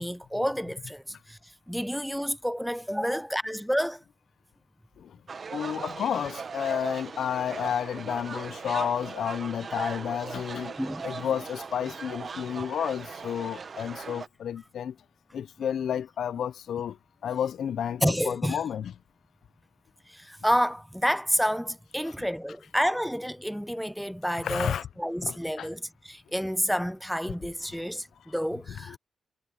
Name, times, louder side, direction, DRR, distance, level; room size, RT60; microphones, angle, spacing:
voice 1, 0.0-1.4 1.7-4.0 10.8-11.3 18.0-18.6 20.1-29.0, equal, ahead, 0.7 m, -29 dB
sound 1, 5.3-14.3, right 5 dB, 55° right, 1.4 m, -39 dB
voice 2, 5.5-10.7 11.0-14.9 15.3-16.9 17.2-18.9 24.4-24.8 25.2-25.7 28.9-29.0, left 9 dB, 80° left, 0.6 m, -31 dB
cardioid pair, 60°, 0 cm